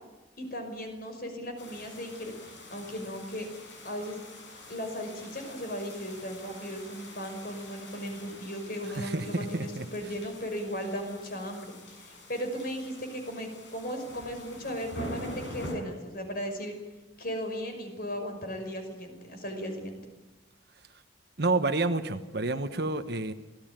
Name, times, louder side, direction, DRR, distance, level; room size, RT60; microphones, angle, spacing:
voice 1, 0.4-3.5 3.8-4.2 4.7-16.7 17.2-20.0, equal, 50° left, 5 dB, 5.6 m, -37 dB
sound 1, 1.6-15.7, left 1 dB, 65° left, 7.7 m, -45 dB
voice 2, 9.0-9.8 21.4-23.3, right 2 dB, 55° right, 7 dB, 1.3 m, -29 dB
26.5 x 18.0 x 9.0 m, 1.1 s
head